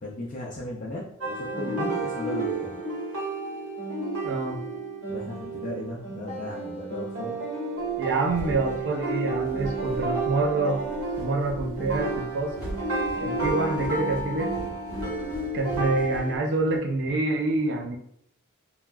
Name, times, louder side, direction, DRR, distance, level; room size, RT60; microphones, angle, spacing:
voice 1, 0.0-2.8 5.1-7.4 13.3-13.6, left 1 dB, 35° left, -4 dB, 0.4 m, -36 dB
sound 1, 1.2-16.4, right 2 dB, 85° right, 1.3 m, -31 dB
voice 2, 4.2-4.6 8.0-10.8 11.2-12.6 13.2-14.5 15.5-18.0, right 3 dB, 55° right, 2 dB, 0.5 m, -27 dB
sound 2, 7.9-16.8, equal, 5° right, 1.2 m, -41 dB
3.3 x 2.3 x 2.2 m, 0.70 s
head